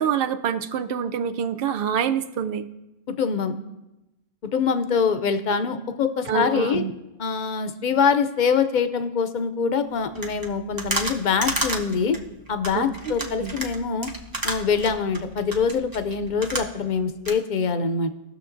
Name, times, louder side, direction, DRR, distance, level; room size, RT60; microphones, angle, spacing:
voice 1, 0.0-2.7 6.3-6.9 12.7-12.9 13.2-13.5, right 8 dB, 65° right, 9 dB, 0.7 m, -26 dB
voice 2, 3.1-3.5 4.5-6.8 7.2-12.2 12.5-14.1 14.4-18.1, left 6 dB, 55° left, 10 dB, 0.7 m, -24 dB
sound 1, 10.1-17.0 17.2-17.3, right 1 dB, 20° right, 0.8 m, -31 dB
18.0 x 6.5 x 2.6 m, 0.98 s
omnidirectional pair, 1.1 m